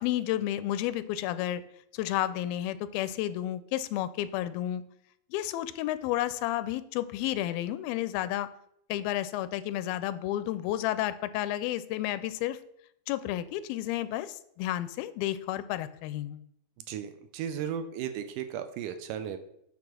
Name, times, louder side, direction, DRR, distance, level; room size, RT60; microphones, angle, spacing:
voice 1, 0.0-1.6 1.9-4.8 5.3-8.5 8.9-12.6 13.1-16.4, left 13 dB, 85° left, 14 dB, 2.4 m, -31 dB
voice 2, 16.9-19.4, right 8 dB, 80° right, 9 dB, 2.0 m, -35 dB
8.7 x 3.7 x 6.1 m, 0.74 s
omnidirectional pair, 4.2 m